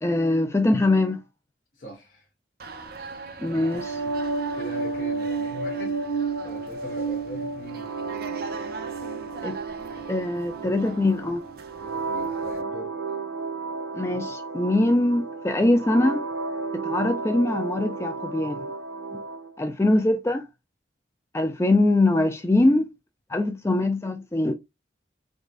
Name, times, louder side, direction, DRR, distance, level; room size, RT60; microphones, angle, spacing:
voice 1, 0.0-1.2 3.4-4.0 9.4-9.6 10.1-11.4 13.9-16.3 16.7-18.7 19.6-20.4 21.3-22.9 23.3-24.5, left 2 dB, 15° left, 0.3 m, -22 dB
voice 2, 1.7-2.3 4.5-6.0 6.4-7.9 11.8-12.9, equal, 50° left, 1.0 m, -41 dB
sound 1, 2.6-12.6, right 3 dB, 55° right, 0.6 m, -42 dB
sound 2, 3.5-19.5, right 4 dB, 90° right, 1.0 m, -32 dB
3.8 x 3.6 x 2.4 m
head